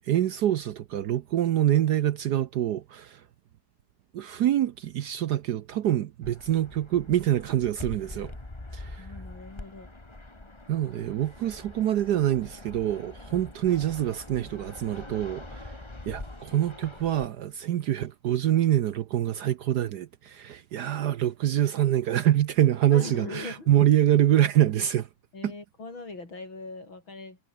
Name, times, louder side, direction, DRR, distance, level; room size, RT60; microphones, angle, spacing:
voice 1, 0.0-3.2 4.1-8.3 8.7-9.1 10.7-15.8 16.1-25.1 25.4-25.5, right 12 dB, 65° right, 1.1 m, -25 dB
Fixed-wing aircraft airplane, 6.2-17.3, left 2 dB, 15° left, 2.0 m, -44 dB
voice 2, 9.0-9.9 22.9-23.7 25.3-27.4, left 3 dB, 70° left, 6.8 m, -40 dB
omnidirectional pair, 2.2 m